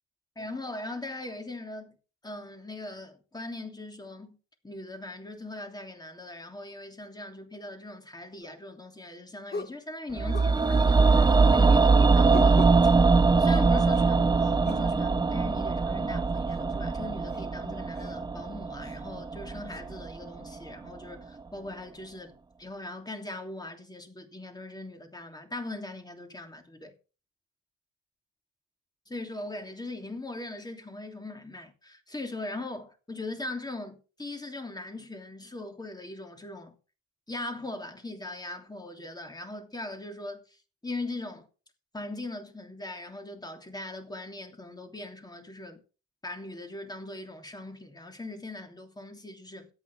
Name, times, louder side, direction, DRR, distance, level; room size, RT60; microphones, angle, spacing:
voice 1, 0.4-1.9 2.2-4.4 4.6-12.9 13.4-22.3 22.6-26.9 29.1-36.7 37.3-41.5 41.9-45.8 46.2-49.7, left 2 dB, 15° left, 3.0 m, -40 dB
sound 1, 8.4-8.6 9.5-9.8 10.3-10.9 12.3-12.8 13.5-14.1 14.6-14.9 16.5-16.6 17.3-17.4 18.0-18.1 18.8-19.0 19.7-19.8, left 4 dB, 35° left, 1.3 m, -40 dB
sound 2, 10.2-20.3 20.6-20.7, right 4 dB, 15° right, 0.5 m, -22 dB
13.0 x 9.0 x 4.8 m
cardioid pair, 90°, 30 cm